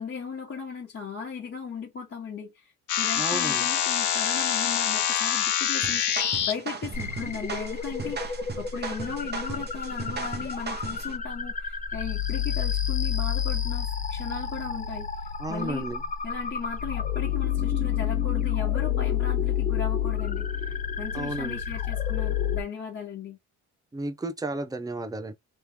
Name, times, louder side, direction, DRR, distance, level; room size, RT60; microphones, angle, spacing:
voice 1, 0.0-15.1 15.5-15.9 16.2-23.4, left 6 dB, 45° left, 1.5 m, -37 dB
sound 1, 2.9-6.5, left 9 dB, 80° left, 0.9 m, -25 dB
voice 2, 3.2-3.7 15.4-16.0 21.1-21.6 23.9-25.3, right 2 dB, 10° right, 0.7 m, -33 dB
sound 2, 5.8-11.1, right 5 dB, 35° right, 1.0 m, -37 dB
sound 3, 6.9-22.6, left 9 dB, 25° left, 0.6 m, -29 dB
3.4 x 3.2 x 2.8 m
cardioid pair, 90°, 30 cm